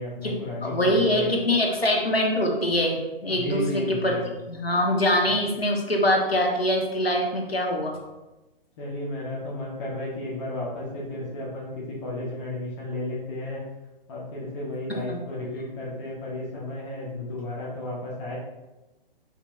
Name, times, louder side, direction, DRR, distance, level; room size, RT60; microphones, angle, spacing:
voice 1, 0.0-1.3 3.3-4.3 5.2-5.3 8.8-13.6 14.1-18.4, left 2 dB, 30° left, -5 dB, 1.6 m, -33 dB
voice 2, 0.6-4.1 4.5-8.0 14.9-15.2, left 1 dB, 80° left, 0 dB, 1.5 m, -24 dB
6.9 x 5.8 x 2.7 m, 1.1 s
figure-of-eight pair, 125°, 30 cm